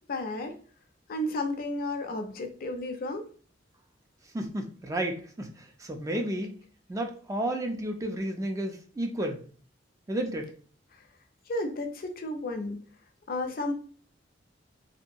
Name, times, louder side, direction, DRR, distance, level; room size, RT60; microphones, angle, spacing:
voice 1, 0.1-0.6 1.1-3.3 6.1-6.2 10.9-11.1 11.5-12.8 13.3-13.7, left 1 dB, 50° left, 5 dB, 0.4 m, -33 dB
voice 2, 4.3-6.5 6.9-9.4 10.1-10.5, right 1 dB, 15° right, 4 dB, 0.3 m, -32 dB
2.8 x 2.2 x 2.5 m, 0.41 s
head